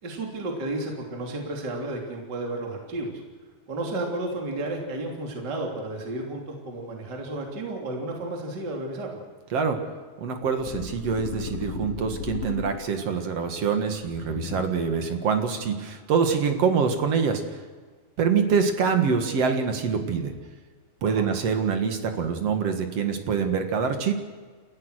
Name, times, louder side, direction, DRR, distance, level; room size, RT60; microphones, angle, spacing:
voice 1, 0.0-3.2 3.7-9.2 21.1-21.2, right 2 dB, 30° right, 1 dB, 3.3 m, -32 dB
voice 2, 10.2-17.6 18.2-20.3 21.0-24.1, right 6 dB, 50° right, 6 dB, 2.3 m, -25 dB
sound 1, 10.6-13.1 14.0-15.0, left 7 dB, 80° left, 3.4 m, -35 dB
29.0 x 15.0 x 6.4 m, 1.5 s
omnidirectional pair, 4.3 m